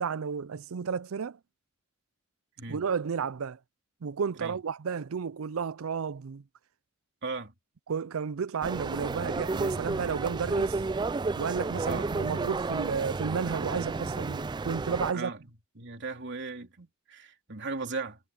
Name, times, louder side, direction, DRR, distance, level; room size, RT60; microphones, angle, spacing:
voice 1, 0.0-1.4 2.7-3.6 4.0-6.4 7.9-10.8 11.4-15.3, right 6 dB, 85° right, 0.5 m, -32 dB
voice 2, 7.2-7.5 11.9-12.1 15.1-15.4 15.8-18.2, right 3 dB, 55° right, 3.3 m, -37 dB
sound 1, 8.6-15.1, right 3 dB, 20° right, 0.3 m, -32 dB
head